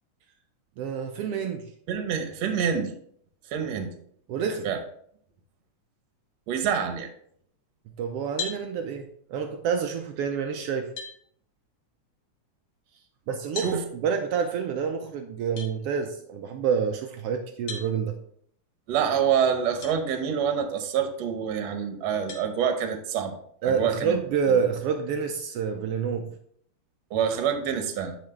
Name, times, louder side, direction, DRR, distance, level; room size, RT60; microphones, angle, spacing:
voice 1, 0.8-1.7 3.7-3.8 4.3-4.7 8.0-10.9 13.3-18.2 23.6-26.3, right 6 dB, 85° right, 5 dB, 1.3 m, -28 dB
voice 2, 1.9-2.9 3.5-3.9 4.6-4.8 6.5-7.1 13.6-13.8 18.9-24.2 24.5-24.6 27.1-28.2, right 7 dB, 65° right, 6 dB, 2.0 m, -27 dB
sound 1, 8.4-8.6 10.3-10.4 11.0-11.2 13.5-13.8 15.6-15.7 17.7-17.9 19.8-20.0 20.6-20.7 22.3-22.5, left 5 dB, 50° left, 2.4 m, -35 dB
10.5 x 4.9 x 3.3 m, 0.64 s
omnidirectional pair, 3.5 m